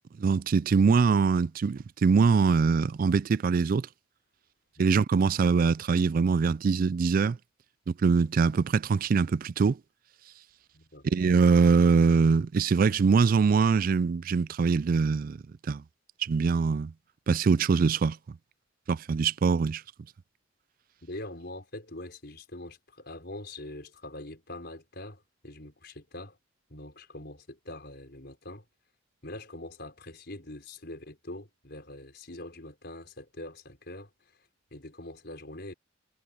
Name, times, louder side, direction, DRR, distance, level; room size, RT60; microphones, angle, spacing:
voice 1, 0.2-3.9 4.8-7.4 7.9-9.8 11.0-15.4 15.7-15.8 16.2-16.9 17.3-18.2 18.9-19.8, right 5 dB, 45° right, 0.3 m, -23 dB
voice 2, 10.7-11.0 21.0-26.4 26.7-28.6 29.2-34.1 34.7-35.7, left 1 dB, 55° left, 5.3 m, -43 dB
head